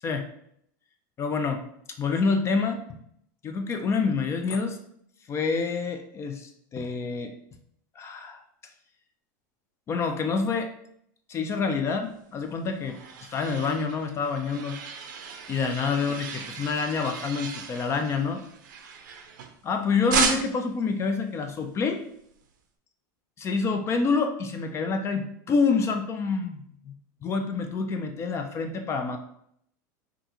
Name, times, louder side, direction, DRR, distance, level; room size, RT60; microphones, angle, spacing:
voice 1, 1.2-1.6 2.0-2.8 3.4-4.8 5.3-7.3 8.0-8.4 9.9-10.7 11.3-14.8 15.5-18.4 19.6-22.0 23.4-26.9 27.2-29.2, left 4 dB, 25° left, 6 dB, 0.3 m, -27 dB
sound 1, 12.4-19.7 20.1-20.8, right 6 dB, 90° right, 0.5 m, -34 dB
3.5 x 2.4 x 2.8 m, 0.70 s
supercardioid pair, 120°, 10 cm